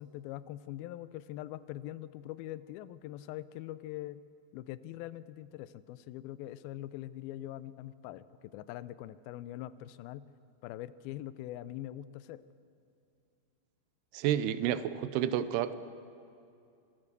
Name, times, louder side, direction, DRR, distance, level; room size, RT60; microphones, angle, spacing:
voice 1, 0.0-4.2 4.5-10.3 10.6-12.4, left 14 dB, 80° left, 16 dB, 2.3 m, -43 dB
voice 2, 14.1-15.8, right 11 dB, 85° right, 13 dB, 2.7 m, -30 dB
25.5 x 15.0 x 6.8 m, 2.5 s
omnidirectional pair, 4.6 m